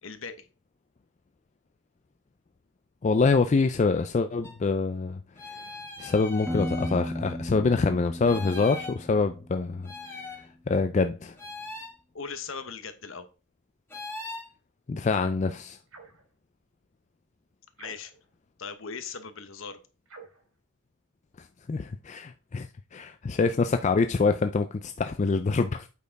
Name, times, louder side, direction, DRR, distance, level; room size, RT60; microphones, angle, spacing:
voice 1, 0.0-0.5 12.1-13.3 17.8-18.1 18.6-19.8, left 5 dB, 65° left, 1.1 m, -39 dB
voice 2, 3.0-5.7 6.0-9.9 10.7-11.4 14.9-15.8 21.4-25.9, left 4 dB, 35° left, 0.4 m, -25 dB
sound 1, 4.4-4.5 5.4-7.0 8.2-9.0 9.8-10.4 11.4-11.9 13.9-14.5, left 3 dB, 10° left, 2.0 m, -40 dB
Piano, 6.5-10.2, equal, 10° right, 0.7 m, -36 dB
sound 2, 15.9-16.3 17.7-18.3 20.0-20.5, right 4 dB, 80° right, 3.1 m, -49 dB
8.3 x 4.4 x 4.6 m
head